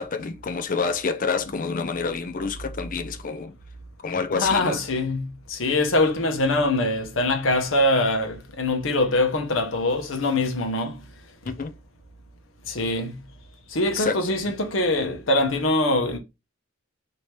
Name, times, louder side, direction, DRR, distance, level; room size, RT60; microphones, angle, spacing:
voice 1, 0.0-3.6 4.0-4.8 11.4-11.7 14.0-14.5, left 5 dB, 40° left, 0.5 m, -28 dB
voice 2, 4.3-11.0 12.7-13.2 13.7-16.2, left 2 dB, 70° left, 1.0 m, -23 dB
3.3 x 2.9 x 4.3 m
head